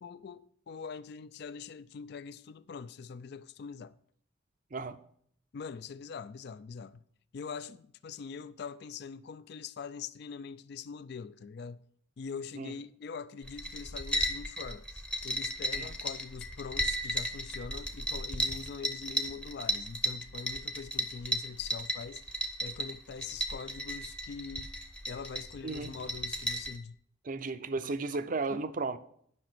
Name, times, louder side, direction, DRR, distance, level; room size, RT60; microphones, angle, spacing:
voice 1, 0.0-4.0 5.5-7.0 7.3-11.9 12.2-24.7 25.1-27.0 27.8-27.9 28.5-28.6, left 5 dB, 55° left, 0.3 m, -43 dB
sound 1, 13.4-26.8, right 1 dB, 5° left, 0.7 m, -35 dB
voice 2, 25.6-25.9 27.2-29.0, right 3 dB, 40° right, 0.5 m, -34 dB
10.5 x 5.9 x 5.9 m
head